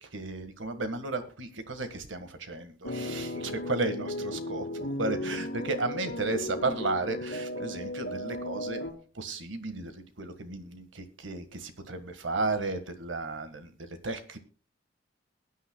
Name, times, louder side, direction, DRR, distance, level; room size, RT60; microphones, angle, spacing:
voice 1, 0.0-8.8 9.1-14.4, right 3 dB, 75° right, 9 dB, 1.6 m, -34 dB
sound 1, 2.8-8.9, left 1 dB, 75° left, 2.5 m, -35 dB
22.0 x 9.3 x 2.3 m, 0.37 s
head